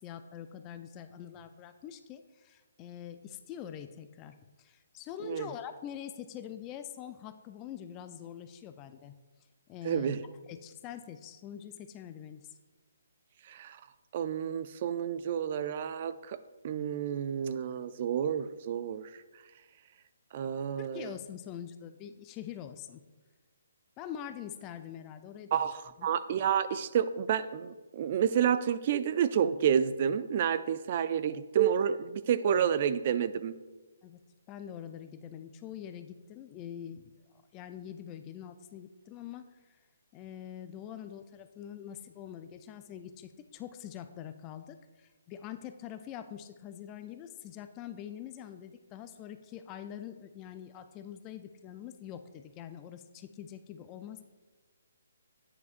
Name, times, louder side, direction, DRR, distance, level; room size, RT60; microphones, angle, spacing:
voice 1, 0.0-9.2 9.7-10.2 10.5-12.5 20.8-23.0 24.0-25.6 26.0-26.1 34.0-39.8 40.1-54.2, left 10 dB, 20° left, 9 dB, 0.4 m, -44 dB
voice 2, 9.8-10.2 13.5-13.8 14.1-16.4 16.6-19.1 20.3-21.1 25.5-33.5, right 8 dB, 40° right, 14 dB, 0.4 m, -29 dB
10.5 x 9.4 x 2.5 m, 1.2 s
hypercardioid pair, 150°, 0 cm